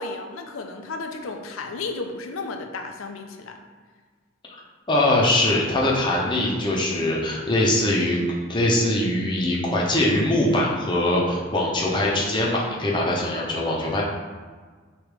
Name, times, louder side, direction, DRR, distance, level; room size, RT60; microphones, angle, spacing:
voice 1, 0.0-3.6, left 3 dB, 80° left, 4 dB, 0.5 m, -33 dB
voice 2, 4.9-14.0, left 1 dB, 25° left, -3 dB, 0.7 m, -22 dB
3.2 x 3.0 x 4.7 m, 1.5 s
head